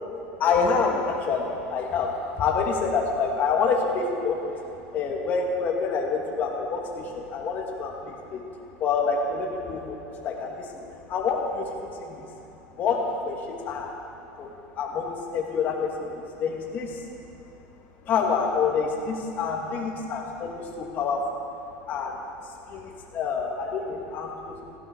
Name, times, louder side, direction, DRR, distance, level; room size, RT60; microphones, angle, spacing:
voice 1, 0.4-4.4 4.9-8.4 8.8-12.3 12.8-13.9 14.4-14.5 14.8-17.0 18.0-21.6 21.9-24.6, left 5 dB, 35° left, 0 dB, 2.4 m, -27 dB
15.5 x 13.5 x 6.3 m, 2.9 s
supercardioid pair, 150°, 5 cm